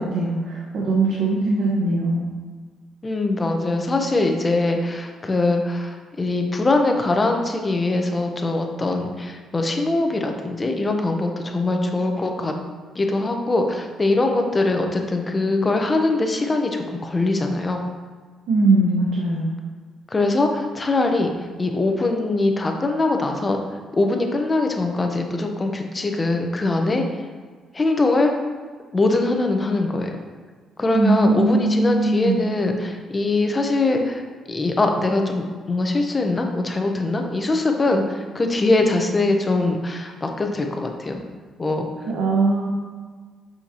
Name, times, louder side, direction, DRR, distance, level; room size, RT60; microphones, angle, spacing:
voice 1, 0.0-2.2 18.5-19.5 30.9-32.5 42.1-42.7, right 2 dB, 70° right, -4 dB, 1.1 m, -20 dB
voice 2, 3.0-12.5 12.9-17.8 20.1-21.3 21.6-23.6 23.9-27.0 27.7-28.3 28.9-30.2 30.8-34.2 34.5-41.2 41.6-41.9, left 2 dB, 25° left, 3 dB, 0.9 m, -22 dB
6.5 x 5.6 x 2.9 m, 1.5 s
cardioid pair, 90°, 0 cm